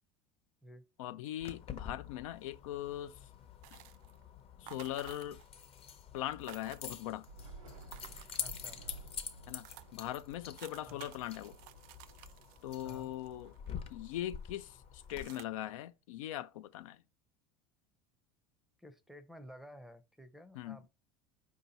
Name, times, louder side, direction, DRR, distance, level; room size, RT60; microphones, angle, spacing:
voice 1, 1.0-3.2 3.7-3.8 4.6-5.4 6.1-7.3 9.5-9.7 9.9-11.6 12.6-13.5 13.9-17.0 20.5-20.8, left 13 dB, 85° left, 0.4 m, -40 dB
Keys jangling, 1.4-15.2, left 8 dB, 35° left, 0.7 m, -47 dB
sound 1, 3.6-4.2 4.7-5.6 5.9-6.0 6.2-7.3 7.8-8.9 9.3-9.4 9.6-13.9 14.3-14.6 15.0-15.4, right 14 dB, 60° right, 0.4 m, -55 dB
Thunder / Rain, 7.2-14.8, right 3 dB, 90° right, 1.0 m, -55 dB
voice 2, 8.3-8.8 10.9-11.1 12.8-13.1 18.8-20.9, equal, ahead, 0.5 m, -53 dB
4.7 x 2.8 x 4.0 m
supercardioid pair, 100°, 17 cm